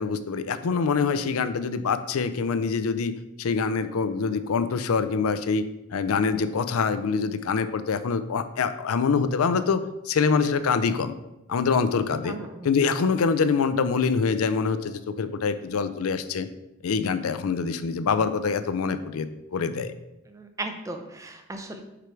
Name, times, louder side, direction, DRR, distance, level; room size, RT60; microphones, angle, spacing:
voice 1, 0.0-5.7 5.9-9.8 10.1-11.1 11.5-12.3 12.6-16.5 16.8-19.9, left 5 dB, 80° left, 12 dB, 0.4 m, -25 dB
voice 2, 12.2-12.7 20.3-21.8, right 2 dB, 15° right, 6 dB, 0.5 m, -36 dB
5.0 x 4.7 x 4.5 m, 0.93 s
head